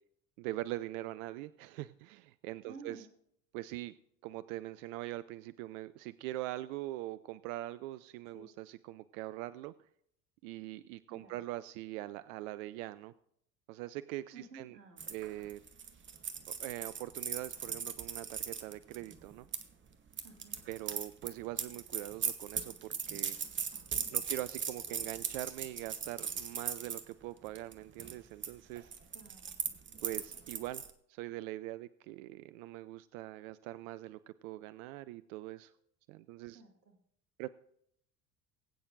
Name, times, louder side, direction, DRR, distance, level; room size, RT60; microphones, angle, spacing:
voice 1, 0.4-3.1 3.5-3.9 4.2-9.7 10.4-13.1 13.7-14.8 15.1-15.6 16.6-19.5 20.7-23.4 24.1-28.9 30.0-30.8 31.1-35.7 36.1-36.6 37.4-37.5, right 16 dB, 60° right, 15 dB, 0.5 m, -42 dB
voice 2, 2.7-3.1 8.3-8.5 11.1-11.4 14.3-15.0 20.2-20.6 24.0-24.3 29.1-29.5 36.5-37.0, right 3 dB, 85° right, 3 dB, 1.9 m, -53 dB
sound 1, 15.0-19.6 20.1-27.0 27.5-27.7 28.0-28.5 28.8-30.9, right 7 dB, 25° right, 1.0 m, -39 dB
20.5 x 8.8 x 2.5 m, 0.70 s
figure-of-eight pair, 65°, 48 cm